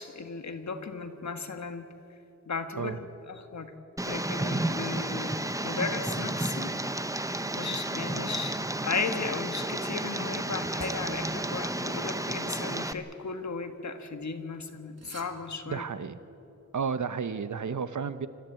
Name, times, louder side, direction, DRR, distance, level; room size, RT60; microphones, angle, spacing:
voice 1, 0.0-1.8 2.4-3.0 3.3-3.7 4.0-6.7 7.5-15.8, left 4 dB, 65° left, 7 dB, 1.7 m, -35 dB
Tick, 4.0-12.9, right 1 dB, 10° right, 0.9 m, -32 dB
sound 1, 10.3-14.1 14.9-17.2, right 3 dB, 55° right, 1.7 m, -54 dB
voice 2, 15.7-16.2 16.7-18.3, right 6 dB, 70° right, 13 dB, 0.9 m, -32 dB
26.0 x 14.0 x 9.0 m, 2.9 s
wide cardioid pair, 90°, 30 cm